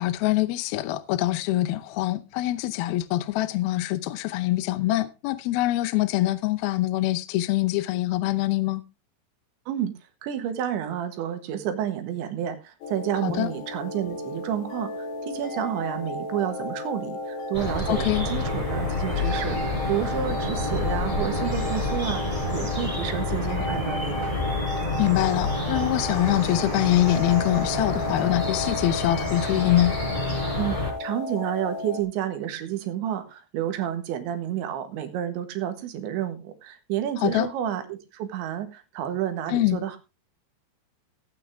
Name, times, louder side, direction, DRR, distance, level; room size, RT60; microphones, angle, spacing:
voice 1, 0.0-8.8 13.2-13.5 17.9-18.3 25.0-30.0 37.2-37.5 39.5-39.8, left 15 dB, 75° left, 2.4 m, -24 dB
voice 2, 10.2-24.3 30.5-40.0, right 10 dB, 85° right, 3.9 m, -30 dB
sound 1, 12.8-32.0, left 2 dB, 60° left, 3.6 m, -34 dB
sound 2, 17.5-30.9, left 2 dB, 5° left, 5.2 m, -28 dB
16.5 x 9.1 x 3.6 m
omnidirectional pair, 5.1 m